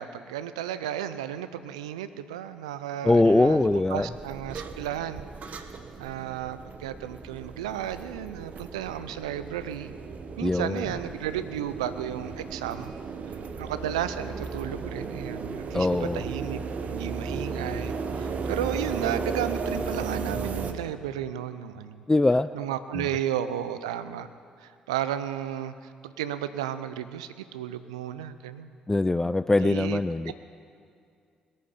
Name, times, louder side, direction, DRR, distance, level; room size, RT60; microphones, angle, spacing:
voice 1, 0.0-5.7 6.0-9.9 10.4-12.9 13.3-22.0 22.5-24.3 24.6-28.8 29.6-30.0 30.3-30.4, right 10 dB, 85° right, 12 dB, 0.5 m, -33 dB
voice 2, 3.0-4.1 10.4-10.9 15.7-16.2 22.1-22.5 23.0-23.1 28.9-30.3, left 2 dB, 15° left, 14 dB, 0.3 m, -22 dB
sound 1, 3.1-20.7, right 4 dB, 50° right, 0.9 m, -35 dB
21.0 x 8.7 x 5.6 m, 2.3 s
hypercardioid pair, 45°, 3 cm